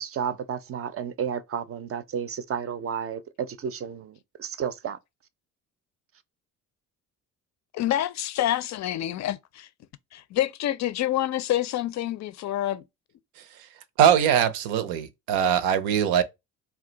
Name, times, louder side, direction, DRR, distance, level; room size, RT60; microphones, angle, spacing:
voice 1, 0.0-5.0, right 7 dB, 40° right, 0.5 m, -32 dB
voice 2, 7.7-9.7 10.1-12.8, left 13 dB, 50° left, 0.5 m, -27 dB
voice 3, 14.0-16.2, right 9 dB, 80° right, 0.6 m, -21 dB
2.3 x 2.2 x 3.8 m
supercardioid pair, 65°, 36 cm